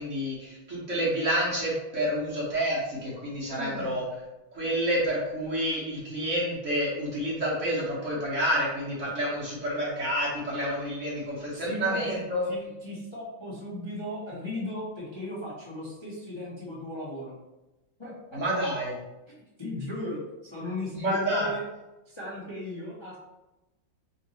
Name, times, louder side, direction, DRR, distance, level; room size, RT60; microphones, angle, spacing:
voice 1, 0.0-4.0 4.5-12.5 18.3-18.9 20.9-21.5, equal, 45° right, -6 dB, 1.3 m, -29 dB
voice 2, 3.5-4.0 11.5-12.2 12.5-17.3 18.0-18.4 19.3-21.6 22.1-23.2, left 1 dB, 25° left, -7 dB, 0.6 m, -37 dB
3.6 x 2.9 x 3.9 m, 0.99 s
omnidirectional pair, 2.2 m